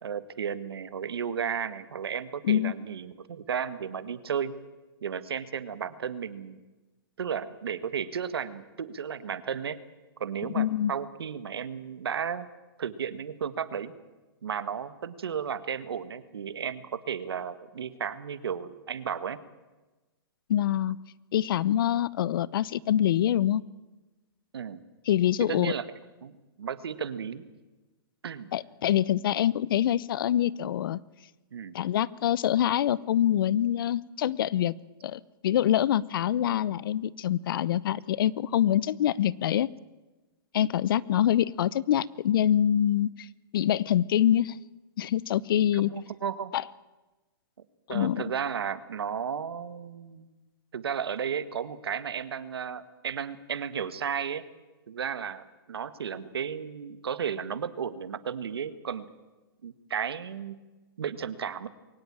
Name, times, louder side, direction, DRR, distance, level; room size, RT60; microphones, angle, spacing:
voice 1, 0.0-4.6 5.0-6.6 7.2-9.8 10.2-12.5 12.8-13.9 14.4-19.4 24.5-24.8 25.4-25.9 26.2-26.3 26.6-27.4 28.2-28.5 31.5-31.7 45.7-46.5 47.9-50.3 50.7-54.5 54.9-59.1 59.6-60.6 61.0-61.7, right 7 dB, 85° right, 13 dB, 1.7 m, -34 dB
voice 2, 10.5-10.9 20.5-21.0 21.3-23.6 25.1-25.7 28.5-31.0 31.7-34.7 35.0-39.7 40.5-43.3 43.5-44.6 45.0-45.9 46.5-46.6 47.9-48.2, left 11 dB, 65° left, 21 dB, 0.8 m, -25 dB
22.5 x 18.5 x 8.8 m, 1.1 s
hypercardioid pair, 140°, 13 cm